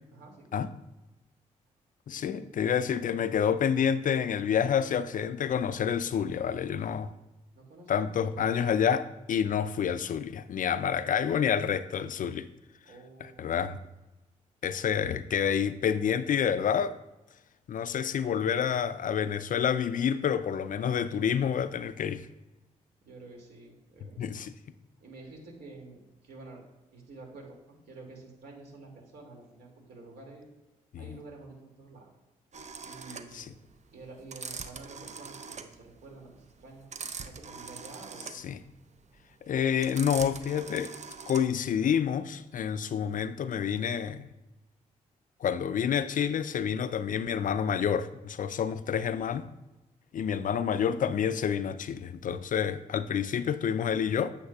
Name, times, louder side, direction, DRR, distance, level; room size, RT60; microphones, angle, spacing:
voice 1, 0.1-0.5 2.1-2.5 7.5-8.6 12.9-13.7 23.0-24.4 25.0-26.6 26.9-30.5 31.0-32.1 32.8-33.5 33.9-36.9 37.2-38.4, right 3 dB, 65° right, 0 dB, 2.4 m, -49 dB
voice 2, 2.1-7.1 7.9-12.5 13.4-13.8 14.6-17.0 17.7-22.2 24.2-24.5 30.9-31.0 33.3-33.5 38.4-38.6 39.5-40.9 41.3-44.3 45.4-49.4 50.1-54.3, left 8 dB, 50° left, 14 dB, 0.5 m, -28 dB
sound 1, 32.5-41.7, right 5 dB, 40° right, 0.8 m, -42 dB
8.5 x 7.6 x 2.4 m, 1.0 s
hypercardioid pair, 40°, 17 cm